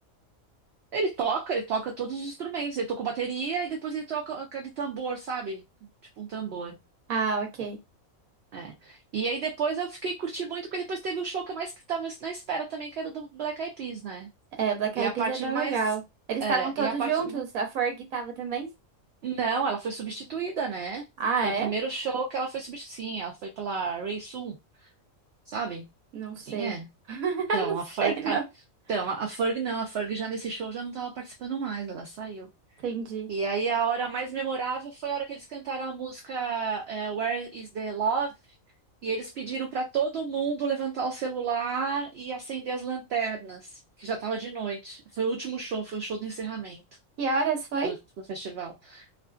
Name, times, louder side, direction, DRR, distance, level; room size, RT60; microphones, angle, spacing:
voice 1, 0.9-5.6 6.2-6.8 8.5-14.3 15.0-15.8 16.4-17.4 19.2-21.1 21.4-24.6 25.5-25.9 26.4-26.9 27.5-28.4 28.9-32.5 33.3-38.3 39.0-46.8 47.8-49.1, right 5 dB, 65° right, 0.7 m, -31 dB
voice 2, 7.1-7.8 14.6-16.0 16.3-18.7 21.2-21.7 26.1-26.7 27.1-28.4 32.8-33.3 47.2-48.0, right 5 dB, 80° right, 1.2 m, -28 dB
2.5 x 2.5 x 2.3 m
omnidirectional pair, 1.4 m